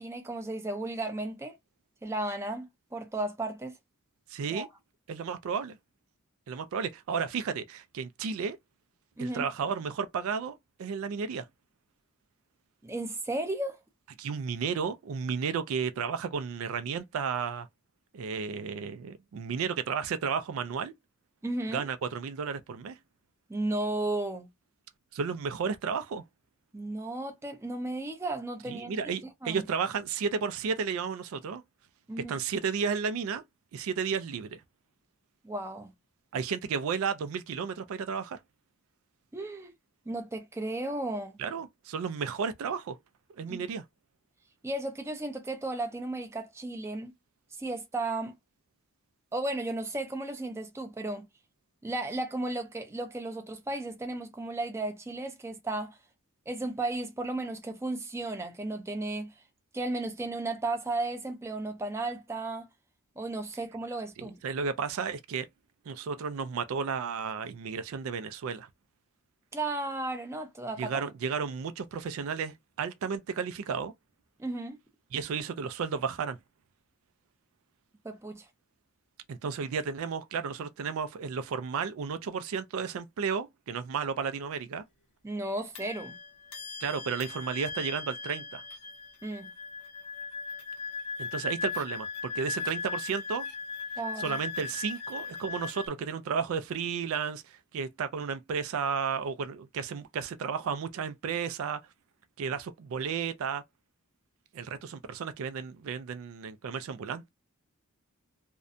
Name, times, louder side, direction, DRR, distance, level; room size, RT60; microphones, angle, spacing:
voice 1, 0.0-1.6 2.0-3.8 4.5-4.7 9.2-9.4 12.8-13.8 21.4-21.9 23.5-24.5 26.7-28.9 29.4-29.6 32.1-32.4 35.4-35.9 39.3-39.7 40.1-41.3 43.5-43.6 44.6-47.1 47.6-48.3 49.3-51.3 51.8-56.0 56.5-59.3 59.7-62.7 63.2-64.4 69.5-71.1 74.4-74.8 78.0-78.5 85.2-86.2 89.2-89.5 94.0-94.4, right 2 dB, 10° right, 0.5 m, -34 dB
voice 2, 4.3-4.7 5.1-5.8 6.5-8.6 9.2-11.5 14.2-17.7 18.1-20.9 21.7-23.0 25.1-26.2 28.7-31.6 32.2-33.4 33.7-34.6 36.3-38.4 41.4-43.0 43.4-43.8 64.2-65.5 65.9-68.7 70.8-73.9 75.1-76.4 79.3-84.8 86.8-88.6 91.2-93.5 94.2-101.8 102.4-103.6 104.5-107.2, right 6 dB, 75° right, 0.3 m, -33 dB
sound 1, 84.2-84.3 85.8-95.9, left 4 dB, 90° left, 1.0 m, -38 dB
2.6 x 2.1 x 2.4 m
head